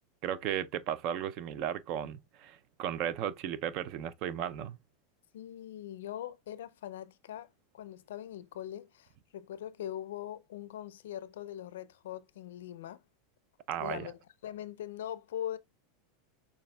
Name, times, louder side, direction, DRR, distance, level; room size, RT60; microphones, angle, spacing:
voice 1, 0.2-4.8 13.7-14.1, right 10 dB, 55° right, 0.4 m, -35 dB
voice 2, 5.3-13.0 13.8-15.6, left 11 dB, 75° left, 0.4 m, -42 dB
6.4 x 2.4 x 2.2 m
hypercardioid pair, 95°, 0 cm